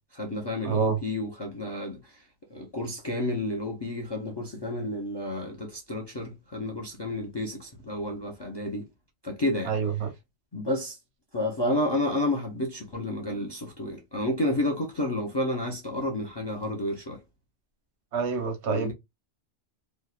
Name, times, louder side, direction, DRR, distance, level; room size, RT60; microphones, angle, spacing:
voice 1, 0.1-2.2 2.5-8.9 9.2-9.7 10.5-11.0 11.3-17.2 18.7-18.9, left 1 dB, 45° left, 0.3 m, -30 dB
voice 2, 0.6-1.0 9.7-10.1 18.1-18.9, right 6 dB, 80° right, 1.0 m, -27 dB
2.8 x 2.0 x 2.3 m
omnidirectional pair, 1.1 m